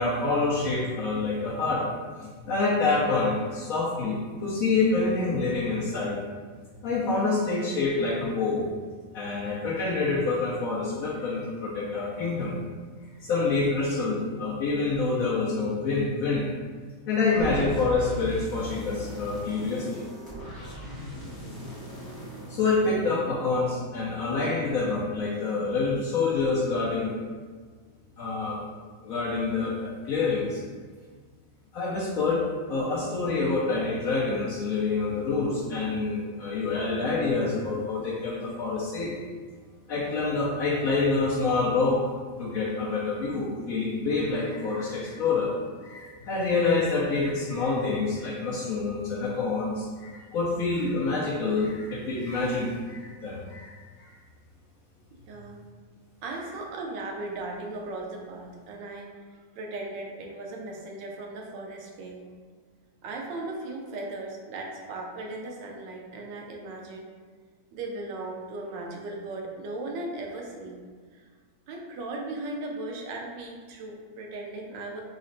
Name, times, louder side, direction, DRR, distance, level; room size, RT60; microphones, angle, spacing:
voice 1, 0.0-6.2 6.8-8.8 9.1-12.5 13.2-16.5 17.1-20.1 22.5-27.2 28.2-28.6 29.0-30.6 31.7-39.1 39.9-42.1 42.4-45.5 45.8-54.1, left 3 dB, 70° left, -4 dB, 0.8 m, -27 dB
sound 1, 17.4-23.5, right 1 dB, 20° left, 0.5 m, -38 dB
voice 2, 55.3-55.6 56.2-62.3 63.0-67.1 67.7-70.8 71.1-71.3 71.7-75.0, right 2 dB, 90° right, 0 dB, 1.3 m, -37 dB
4.0 x 2.1 x 3.8 m, 1.5 s
omnidirectional pair, 1.9 m